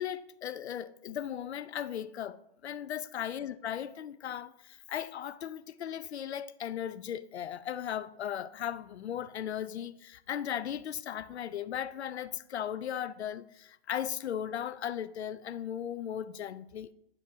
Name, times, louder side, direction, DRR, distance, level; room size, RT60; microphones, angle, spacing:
voice 1, 0.0-4.5 4.9-16.9, left 9 dB, 90° left, 0.6 m, -37 dB
10.5 x 7.1 x 2.8 m
hypercardioid pair, 130°, 32 cm